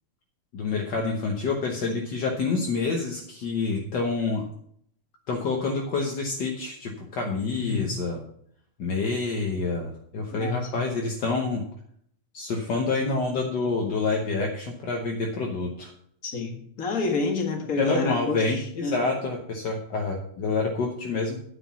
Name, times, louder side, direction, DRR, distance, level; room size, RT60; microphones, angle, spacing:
voice 1, 0.5-4.4 5.3-8.2 8.8-11.6 12.3-15.9 17.8-21.4, left 3 dB, 60° left, 1 dB, 1.2 m, -27 dB
voice 2, 10.3-10.8 16.2-19.0, left 4 dB, 35° left, 3 dB, 1.7 m, -29 dB
9.6 x 6.2 x 7.3 m, 0.67 s
omnidirectional pair, 3.3 m